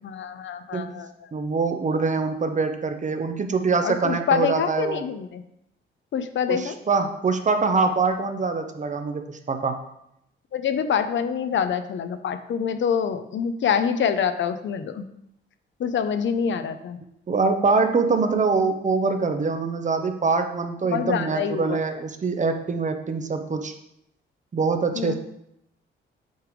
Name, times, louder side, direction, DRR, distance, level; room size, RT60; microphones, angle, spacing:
voice 1, 0.0-1.1 3.8-5.4 6.1-6.8 10.5-15.1 15.8-17.0 20.9-21.8 25.0-25.1, left 7 dB, 65° left, 10 dB, 0.6 m, -26 dB
voice 2, 0.7-1.0 1.3-5.0 6.5-9.8 17.3-23.7 24.5-25.1, right 4 dB, 35° right, 7 dB, 0.7 m, -24 dB
7.9 x 3.3 x 5.1 m, 0.79 s
cardioid pair, 100°, 21 cm